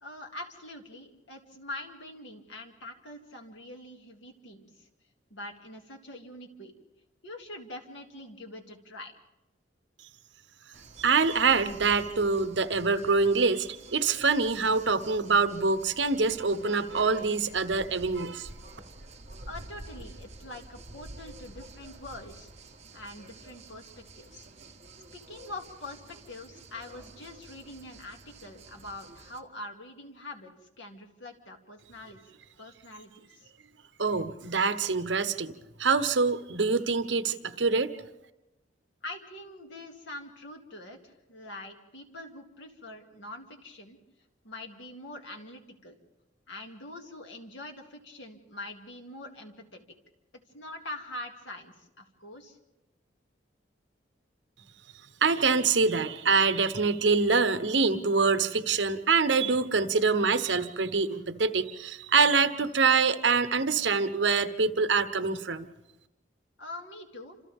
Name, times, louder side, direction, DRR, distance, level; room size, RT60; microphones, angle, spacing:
voice 1, 0.0-4.9 5.3-6.7 7.2-9.1 19.5-22.5 22.9-24.5 25.1-32.2 32.6-33.5 39.0-44.0 44.4-46.0 46.5-49.8 50.5-52.6 66.6-67.4, left 1 dB, 75° left, 3 dB, 2.5 m, -44 dB
sound 1, 10.7-29.4, right 2 dB, 40° right, 1.5 m, -49 dB
voice 2, 11.0-18.5 34.0-37.9 55.2-65.7, right 4 dB, 70° right, 11 dB, 1.0 m, -25 dB
28.5 x 27.0 x 3.6 m, 0.98 s
head